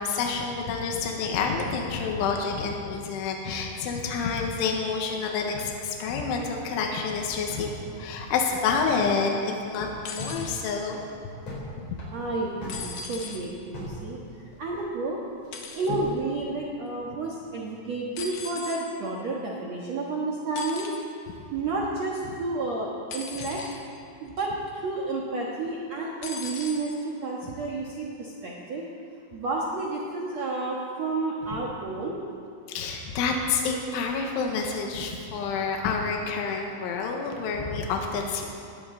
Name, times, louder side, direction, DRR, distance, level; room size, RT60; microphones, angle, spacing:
voice 1, 0.0-7.7 8.0-11.0 11.8-12.0 15.7-15.8 32.7-38.5, left 5 dB, 85° left, 1 dB, 3.7 m, -28 dB
sound 1, 7.5-9.2 9.5-9.6 9.9-10.4 10.8-11.7 12.0-14.0 14.3-14.9 15.4-16.2, left 2 dB, 35° left, 5.2 m, -38 dB
sound 2, 10.0-10.5 12.7-13.4 15.5-15.9 18.2-18.9 20.6-21.1 23.1-23.8 24.4-24.7 26.2-26.8 27.8-27.9, left 4 dB, 60° left, 2.4 m, -38 dB
voice 2, 12.1-14.2 14.6-15.2 15.7-20.9 21.5-23.6 24.2-28.8 29.3-32.2, right 3 dB, 85° right, -3 dB, 1.5 m, -31 dB
20.0 x 17.0 x 3.9 m, 2.5 s
omnidirectional pair, 5.5 m